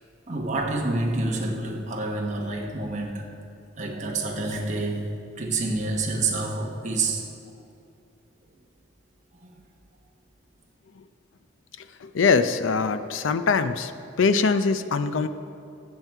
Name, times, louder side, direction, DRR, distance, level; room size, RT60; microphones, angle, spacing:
voice 1, 0.3-3.3 3.8-7.2 9.4-9.6, right 2 dB, 40° right, 0 dB, 1.2 m, -28 dB
voice 2, 12.0-13.9 14.2-15.3, left 4 dB, 90° left, 11 dB, 0.5 m, -22 dB
13.5 x 7.5 x 4.6 m, 2.7 s
head